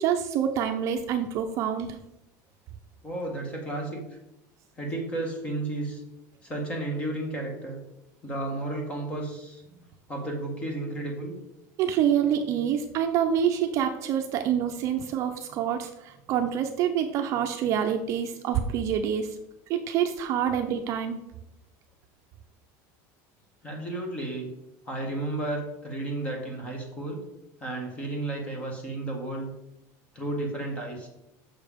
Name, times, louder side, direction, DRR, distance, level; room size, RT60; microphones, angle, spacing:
voice 1, 0.0-2.0 11.8-19.3 19.7-21.2, right 9 dB, 40° right, 5 dB, 0.6 m, -26 dB
voice 2, 3.0-4.0 4.8-6.0 6.4-7.8 8.2-9.6 10.1-11.4 23.6-24.5 24.9-27.2 27.6-29.5 30.1-31.1, right 2 dB, 15° left, 1 dB, 1.7 m, -32 dB
7.1 x 6.1 x 5.1 m, 0.86 s
cardioid pair, 175°, 8 cm